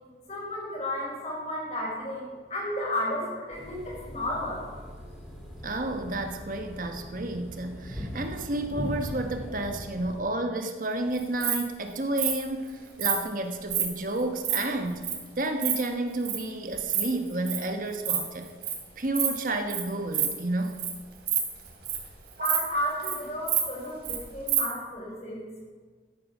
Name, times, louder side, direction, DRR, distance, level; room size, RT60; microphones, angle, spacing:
voice 1, 0.3-4.6 22.4-25.4, left 1 dB, 40° left, -3 dB, 4.6 m, -32 dB
sound 1, 3.5-10.2, equal, 5° right, 3.2 m, -40 dB
voice 2, 5.6-15.1 15.4-18.5 19.0-20.8 22.4-22.5, right 2 dB, 50° right, 5 dB, 1.3 m, -31 dB
Insect, 11.1-11.6 12.2-12.3 13.0-13.2 13.7-13.8 14.2-14.6 15.0-15.1 15.4-15.7 16.2-16.4 16.7-17.0 17.3-17.6 17.9-18.2 18.4-18.7 19.1-19.4 19.7-19.8 20.1-20.3 20.6-20.9 21.2-22.1 22.4-22.6 22.9-23.1 23.5-24.2 24.5-24.6, right 10 dB, 65° right, 3.2 m, -27 dB
13.0 x 8.9 x 6.1 m, 1.5 s
head